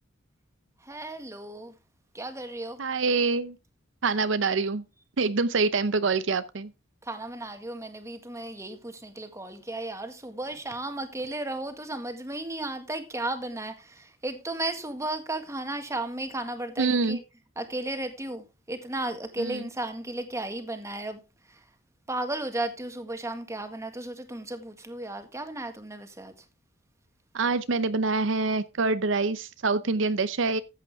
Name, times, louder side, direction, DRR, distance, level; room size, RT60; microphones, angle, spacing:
voice 1, 0.8-1.7 2.1-2.8 7.0-17.2 17.6-21.2 21.5-21.6 22.1-26.3, right 2 dB, 15° right, 1.8 m, -34 dB
voice 2, 2.8-3.6 4.0-4.8 5.2-6.7 16.8-17.2 19.4-19.7 27.3-30.6, right 4 dB, 70° right, 0.7 m, -25 dB
14.0 x 8.7 x 3.5 m
head